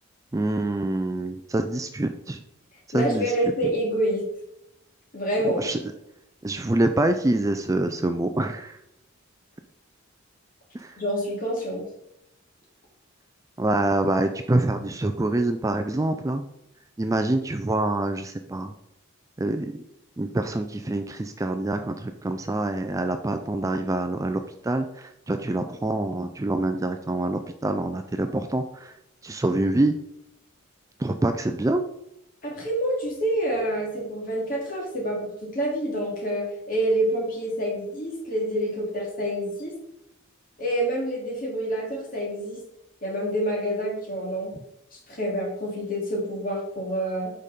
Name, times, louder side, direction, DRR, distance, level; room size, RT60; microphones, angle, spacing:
voice 1, 0.3-2.4 2.9-3.3 5.6-5.8 6.4-8.8 10.7-10.9 13.6-16.4 17.0-18.7 19.4-19.8 20.2-28.9 29.2-30.0 31.0-31.8, right 2 dB, 15° right, 7 dB, 0.4 m, -26 dB
voice 2, 2.9-4.3 5.1-5.6 11.0-11.8 32.4-39.7 40.6-42.6 43.0-44.5 44.9-47.3, right 1 dB, 40° left, -2 dB, 2.8 m, -27 dB
8.3 x 5.3 x 4.2 m, 0.82 s
head